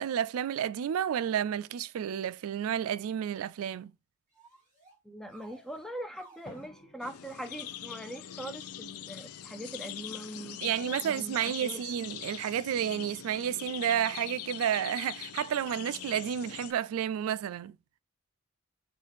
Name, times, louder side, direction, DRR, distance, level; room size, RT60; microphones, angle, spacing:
voice 1, 0.0-3.9 10.6-17.8, right 9 dB, 65° right, 0.3 m, -31 dB
sound 1, 4.3-5.0 5.3-6.7 7.2-9.0 9.6-9.9 10.6-10.8, right 2 dB, 35° right, 2.8 m, -59 dB
voice 2, 5.0-11.8, right 1 dB, ahead, 0.5 m, -42 dB
Drum, 6.5-8.6, left 1 dB, 25° left, 1.4 m, -54 dB
sound 2, 7.0-16.7, left 10 dB, 75° left, 0.5 m, -43 dB
6.6 x 2.4 x 3.4 m
head